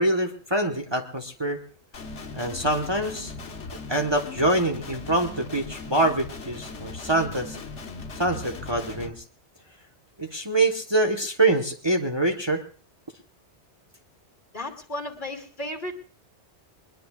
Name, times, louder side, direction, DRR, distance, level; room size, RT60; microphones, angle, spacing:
voice 1, 0.0-1.6 2.3-3.3 3.9-7.6 8.2-9.1 10.2-12.6, right 2 dB, 25° right, 4 dB, 1.3 m, -25 dB
Guitar, 1.9-9.1, left 3 dB, 85° left, 1.6 m, -38 dB
voice 2, 14.5-16.1, left 1 dB, 45° left, 3 dB, 2.7 m, -34 dB
22.0 x 21.0 x 2.4 m, 0.39 s
omnidirectional pair, 1.2 m